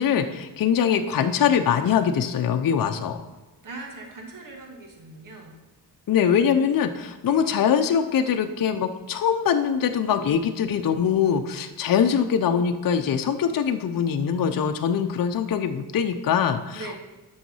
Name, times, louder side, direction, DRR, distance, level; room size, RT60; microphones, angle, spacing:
voice 1, 0.0-3.2 6.1-17.0, left 7 dB, 60° left, 6 dB, 0.7 m, -23 dB
voice 2, 3.6-5.6 7.2-7.6 16.7-17.0, right 3 dB, 55° right, 1 dB, 2.0 m, -40 dB
9.1 x 6.4 x 5.6 m, 1.1 s
cardioid pair, 95°, 38 cm